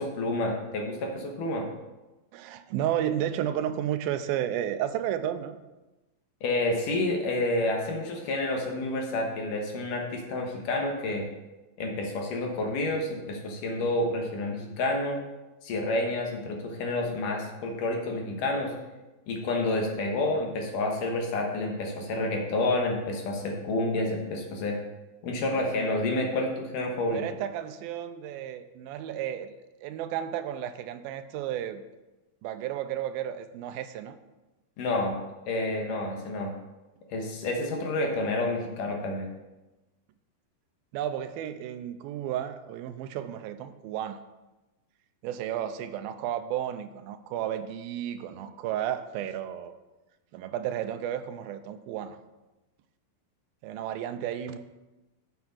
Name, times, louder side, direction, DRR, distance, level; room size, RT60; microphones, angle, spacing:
voice 1, 0.0-1.7 6.4-11.3 11.8-15.2 15.6-18.7 19.3-24.8 25.2-27.2 34.8-35.2 35.5-36.5 37.1-39.3, left 2 dB, 65° left, 1 dB, 2.7 m, -29 dB
voice 2, 2.3-5.6 27.1-29.5 29.8-31.8 32.4-34.2 40.9-44.2 45.2-49.7 50.3-52.2 53.6-54.6, right 10 dB, 85° right, 10 dB, 2.4 m, -32 dB
7.4 x 7.0 x 6.1 m, 1.1 s
omnidirectional pair, 4.2 m